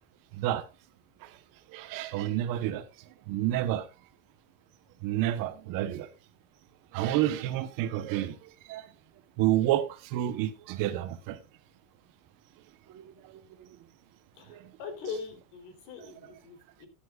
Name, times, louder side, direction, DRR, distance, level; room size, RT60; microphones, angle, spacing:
voice 1, 1.7-2.8 3.3-3.9 5.0-6.1 6.9-8.9 9.4-11.4 12.9-13.3 14.5-14.7, right 13 dB, 45° right, 1.2 m, -29 dB
voice 2, 14.4-16.9, left 5 dB, 55° left, 4.0 m, -41 dB
16.5 x 10.5 x 2.4 m
cardioid pair, 175°, 46 cm